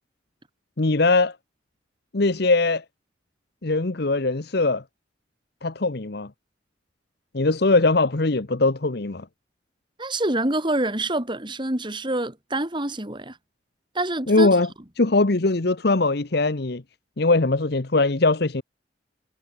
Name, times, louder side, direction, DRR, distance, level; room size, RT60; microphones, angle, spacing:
voice 1, 0.8-1.4 2.1-2.8 3.6-4.8 5.6-6.3 7.3-9.3 14.3-14.7 15.0-16.8 17.2-18.6, left 3 dB, 60° left, 1.0 m, -21 dB
voice 2, 10.0-13.4 13.9-14.5, right 1 dB, 25° right, 3.1 m, -26 dB
head